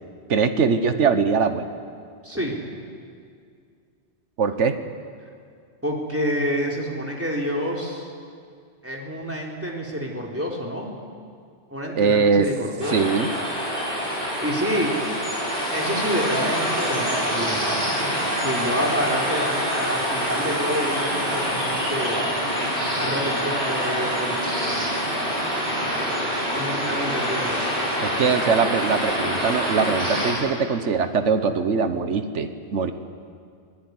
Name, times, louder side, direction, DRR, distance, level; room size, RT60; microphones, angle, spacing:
voice 1, 0.3-1.7 4.4-4.8 12.0-12.5 12.9-13.3 28.0-32.9, right 5 dB, 80° right, 9 dB, 1.5 m, -22 dB
voice 2, 2.2-2.6 5.8-8.1 8.8-10.9 11.7-13.2 14.4-14.9 15.7-17.6 18.4-22.2 23.0-24.4 26.5-27.5, equal, 10° right, -1 dB, 3.9 m, -28 dB
sound 1, 12.8-30.3, equal, 50° right, 7.3 m, -25 dB
25.0 x 18.0 x 9.7 m, 2.3 s
omnidirectional pair, 1.2 m